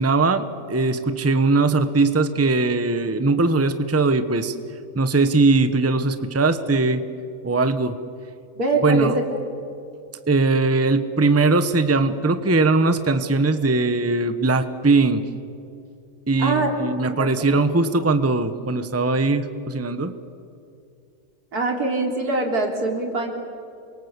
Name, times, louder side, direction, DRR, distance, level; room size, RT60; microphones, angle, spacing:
voice 1, 0.0-4.5 4.9-7.0 7.4-8.0 8.8-9.2 10.3-15.2 16.3-20.1, right 3 dB, 10° right, 10 dB, 1.0 m, -20 dB
voice 2, 8.6-9.2 16.4-16.7 17.1-17.6 21.5-23.3, right 2 dB, 85° right, 2 dB, 4.1 m, -23 dB
29.0 x 23.0 x 8.3 m, 2.5 s
omnidirectional pair, 1.6 m